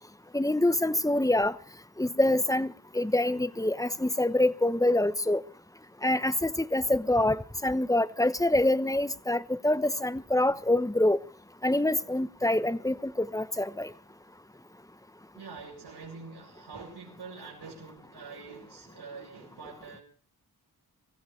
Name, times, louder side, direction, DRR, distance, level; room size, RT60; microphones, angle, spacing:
voice 1, 0.3-1.5 2.0-5.4 6.0-11.2 11.6-13.9, left 1 dB, 10° left, 1.0 m, -26 dB
voice 2, 15.3-20.0, right 4 dB, 80° right, 5.3 m, -45 dB
24.0 x 15.0 x 3.3 m
cardioid pair, 60°, 39 cm